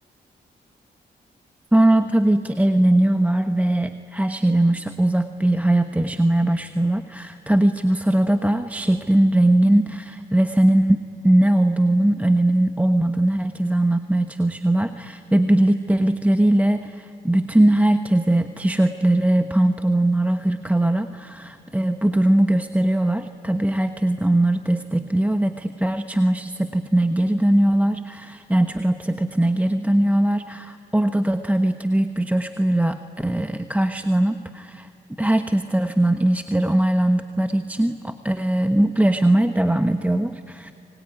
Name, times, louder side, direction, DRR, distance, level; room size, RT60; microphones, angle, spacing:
voice 1, 1.7-11.0 11.2-34.9 35.2-40.7, right 1 dB, 5° right, 8 dB, 1.1 m, -20 dB
25.5 x 22.0 x 9.7 m, 2.6 s
supercardioid pair, 55°, 20 cm